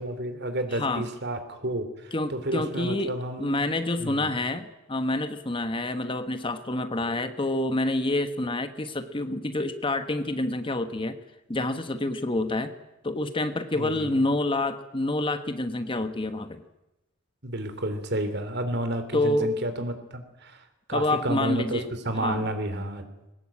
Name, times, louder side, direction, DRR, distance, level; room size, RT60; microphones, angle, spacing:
voice 1, 0.0-3.6 4.0-4.3 13.7-14.1 17.4-20.6 20.9-23.0, right 1 dB, 55° right, 9 dB, 3.2 m, -31 dB
voice 2, 0.7-1.1 2.1-3.1 3.4-11.1 11.5-12.7 13.0-16.6 19.1-19.5 20.9-21.9 22.2-22.5, left 2 dB, 25° left, 9 dB, 1.3 m, -27 dB
22.0 x 19.0 x 8.6 m, 0.96 s
head